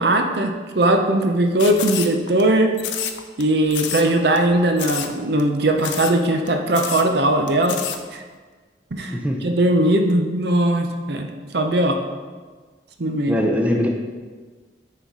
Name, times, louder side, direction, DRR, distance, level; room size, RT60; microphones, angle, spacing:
voice 1, 0.0-2.8 3.4-7.8 8.1-8.2 8.9-9.1 9.4-12.0 13.0-13.4, right 1 dB, 60° right, 5 dB, 0.7 m, -19 dB
sound 1, 1.6-2.4 2.8-3.4 3.7-4.1 4.4-4.5 4.8-5.1 5.4-5.5 5.8-6.2 6.5-6.6 6.7-7.1 7.5-8.0, left 9 dB, 85° left, 0.6 m, -29 dB
voice 2, 9.1-9.4 13.3-13.9, equal, 10° right, 1 dB, 0.6 m, -21 dB
9.8 x 4.1 x 4.7 m, 1.4 s
head